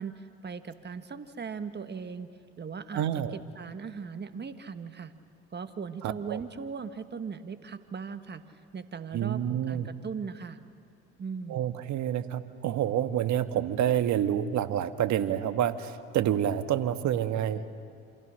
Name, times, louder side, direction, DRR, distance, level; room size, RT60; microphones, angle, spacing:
voice 1, 0.0-2.3 2.6-5.1 5.5-8.4 8.7-10.6 11.2-11.7, right 6 dB, 30° right, 10 dB, 1.7 m, -39 dB
voice 2, 2.9-3.4 6.0-6.4 9.1-9.9 11.5-17.7, right 10 dB, 60° right, 11 dB, 1.5 m, -28 dB
28.0 x 27.0 x 6.5 m, 2.4 s
hypercardioid pair, 65°, 33 cm